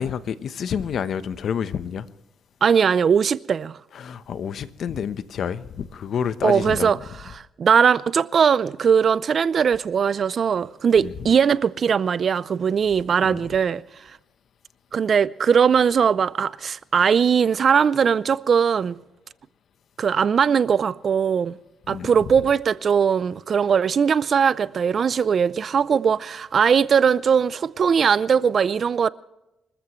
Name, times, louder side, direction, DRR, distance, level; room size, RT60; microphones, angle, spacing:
voice 1, 0.0-2.1 3.9-6.9 11.0-11.1 13.2-13.4 21.9-22.1, left 7 dB, 60° left, 0.9 m, -28 dB
voice 2, 2.6-3.8 6.4-7.0 7.2-13.8 14.9-19.0 20.0-21.6 21.9-29.1, right 7 dB, 50° right, 0.5 m, -20 dB
25.5 x 14.5 x 3.1 m
cardioid pair, 90°, 0 cm